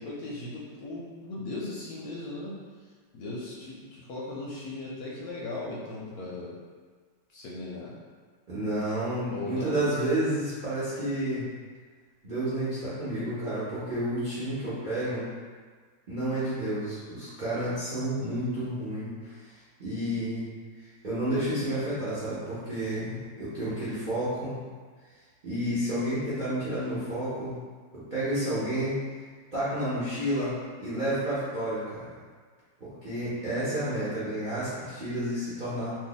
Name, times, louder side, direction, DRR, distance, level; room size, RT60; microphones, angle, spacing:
voice 1, 0.0-2.6 3.1-6.5 7.3-7.9 9.3-9.8, left 2 dB, 70° left, -5 dB, 1.0 m, -37 dB
voice 2, 8.5-11.4 12.2-15.2 16.1-19.3 19.8-20.4 21.0-24.5 25.4-27.5 27.9-29.0 29.5-30.5 30.8-32.1 32.8-36.0, right 1 dB, 40° right, -11 dB, 0.7 m, -30 dB
2.7 x 2.6 x 3.9 m, 1.5 s
omnidirectional pair, 1.9 m